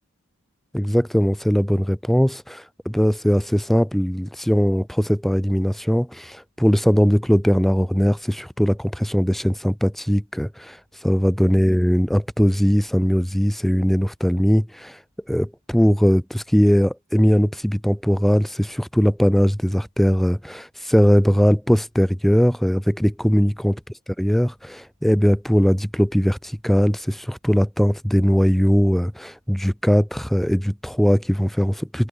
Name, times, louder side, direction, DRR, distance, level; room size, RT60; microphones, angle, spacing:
voice 1, 0.7-10.8 11.0-15.0 15.3-23.8 24.2-32.1, equal, ahead, 0.3 m, -20 dB
head